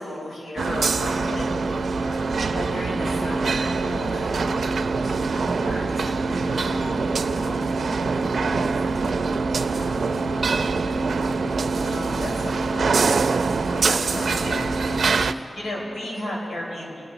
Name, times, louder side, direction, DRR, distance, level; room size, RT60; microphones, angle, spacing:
voice 1, 0.0-1.9 2.5-4.3 5.2-5.3 5.5-5.8 11.8-12.9 13.5-17.0, left 1 dB, 85° left, -4 dB, 4.4 m, -33 dB
sound 1, 0.6-15.3, right 4 dB, 70° right, 0.5 m, -24 dB
voice 2, 1.9-2.5 4.1-4.8 5.3-11.6 12.6-12.9 13.7-14.4, equal, 55° left, -3 dB, 4.5 m, -41 dB
28.5 x 12.0 x 4.0 m, 2.9 s
wide cardioid pair, 105°, 0 cm